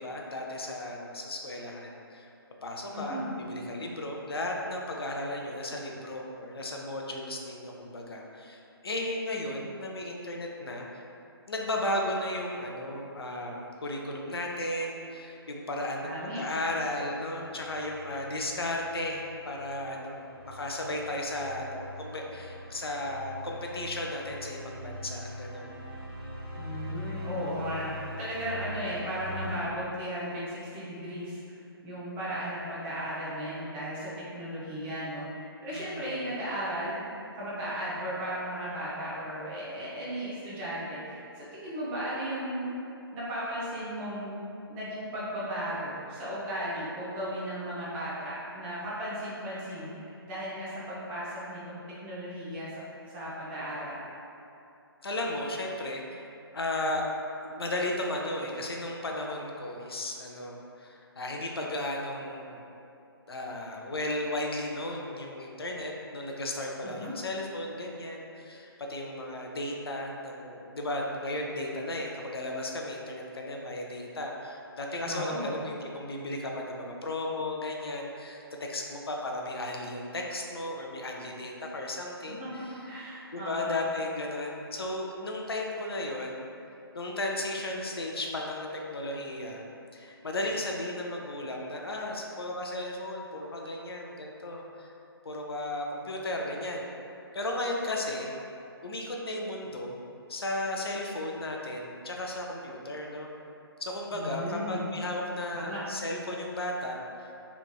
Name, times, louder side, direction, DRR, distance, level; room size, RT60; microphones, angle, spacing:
voice 1, 0.0-2.3 2.6-11.0 11.5-25.7 35.7-36.2 55.0-56.2 56.5-57.1 57.3-62.6 63.3-82.7 83.3-86.5 86.9-89.6 89.9-94.9 95.2-96.9 97.3-98.3 98.8-100.0 100.3-103.3 103.8-107.3, left 1 dB, 70° left, 0 dB, 0.4 m, -35 dB
voice 2, 2.9-3.3 16.0-16.4 26.5-31.4 31.8-37.1 37.3-42.8 43.1-44.3 44.7-52.7 53.1-54.0 66.8-67.1 75.1-75.5 82.4-83.8 104.1-104.8 105.5-105.8, equal, 10° right, -9 dB, 0.4 m, -36 dB
sound 1, 16.8-29.6, left 1 dB, 65° right, 0.8 m, -42 dB
3.3 x 3.0 x 2.2 m, 2.7 s
figure-of-eight pair, 140°, 13 cm